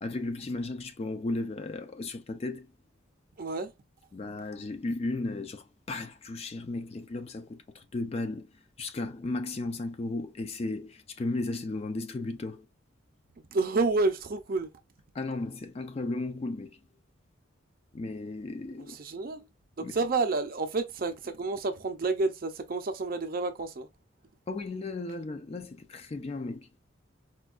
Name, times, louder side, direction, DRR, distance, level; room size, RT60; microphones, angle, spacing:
voice 1, 0.0-2.7 4.1-12.7 15.1-16.8 17.9-19.0 19.8-19.9 24.5-26.7, left 2 dB, 30° left, 0.3 m, -35 dB
voice 2, 3.4-3.7 13.5-14.7 18.9-19.5 19.8-23.9, right 3 dB, 45° right, 0.5 m, -29 dB
4.3 x 2.2 x 2.4 m
head